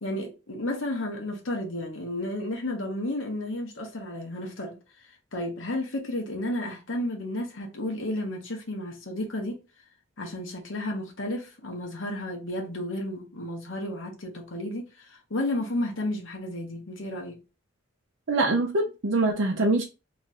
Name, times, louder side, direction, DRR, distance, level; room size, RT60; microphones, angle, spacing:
voice 1, 0.0-9.6 10.2-17.4, left 1 dB, 80° left, 1.1 m, -32 dB
voice 2, 18.3-19.8, right 2 dB, 70° right, 0.5 m, -24 dB
3.1 x 2.5 x 4.0 m
head